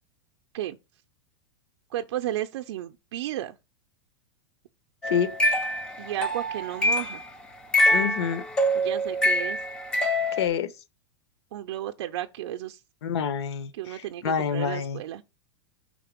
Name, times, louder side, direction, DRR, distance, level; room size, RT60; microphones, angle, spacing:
voice 1, 1.9-3.6 6.0-7.2 8.7-9.6 11.5-12.8 13.7-15.2, right 13 dB, 60° right, 0.5 m, -33 dB
sound 1, 5.0-7.2 7.7-10.5, left 1 dB, 5° left, 0.3 m, -25 dB
voice 2, 7.9-8.4 10.3-10.7 13.0-15.0, left 7 dB, 65° left, 0.8 m, -27 dB
5.8 x 3.7 x 4.9 m
supercardioid pair, 175°, 15 cm